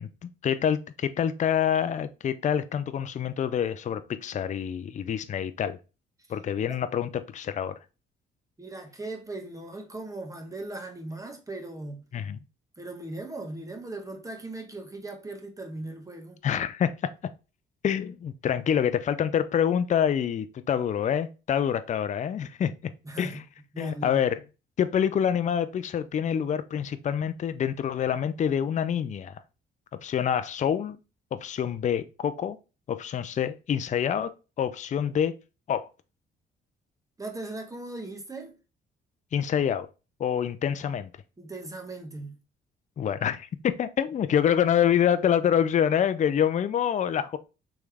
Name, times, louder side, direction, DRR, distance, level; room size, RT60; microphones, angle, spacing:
voice 1, 0.0-5.8 6.3-7.8 12.1-12.4 16.4-17.1 17.8-22.9 23.2-23.4 23.8-24.4 24.8-29.4 30.0-31.0 31.3-32.6 32.9-34.3 34.6-35.3 35.7-35.9 39.3-39.9 40.2-41.1 43.0-47.4, left 9 dB, 40° left, 0.4 m, -26 dB
voice 2, 8.6-12.0 12.8-16.4 23.0-23.4 23.7-24.2 37.2-38.6 41.4-42.4, right 2 dB, 15° right, 1.0 m, -38 dB
3.6 x 3.1 x 3.3 m
cardioid pair, 90°, 20 cm